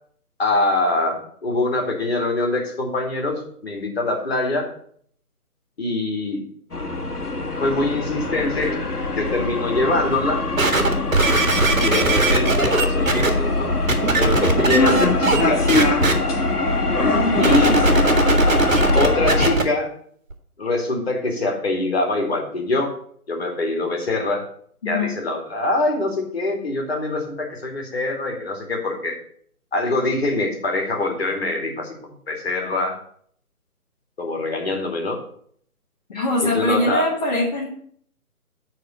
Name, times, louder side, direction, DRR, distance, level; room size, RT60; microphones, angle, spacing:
voice 1, 0.4-4.7 5.8-6.4 7.6-8.8 9.1-10.4 11.8-13.7 14.2-15.7 17.4-17.8 18.9-19.9 20.6-22.9 23.3-24.4 24.9-29.2 29.7-33.0 34.2-35.2 36.4-37.1, left 2 dB, 45° left, 1 dB, 2.4 m, -24 dB
sound 1, 6.7-19.6, left 2 dB, 85° left, 1.8 m, -22 dB
sound 2, 10.6-13.3 13.9-15.4 15.7-16.1 17.4-19.6 20.3-20.4, right 3 dB, 60° right, 1.9 m, -19 dB
voice 2, 36.1-37.7, left 1 dB, 25° left, -6 dB, 1.5 m, -22 dB
9.6 x 4.3 x 7.3 m, 0.62 s
figure-of-eight pair, 150°, 45 cm